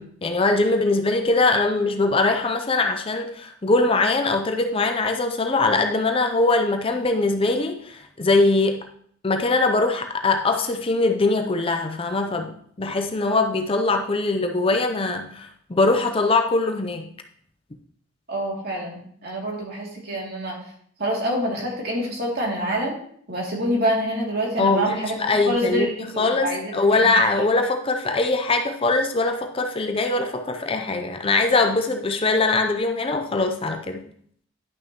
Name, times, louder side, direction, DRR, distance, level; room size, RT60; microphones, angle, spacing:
voice 1, 0.0-8.9 9.2-12.5 12.8-17.1 24.6-25.9 26.2-34.1, left 3 dB, 25° left, 5 dB, 0.5 m, -22 dB
voice 2, 18.3-20.6 21.0-23.0 23.3-27.4, equal, 50° right, -3 dB, 2.6 m, -26 dB
11.0 x 6.1 x 3.0 m, 0.62 s
head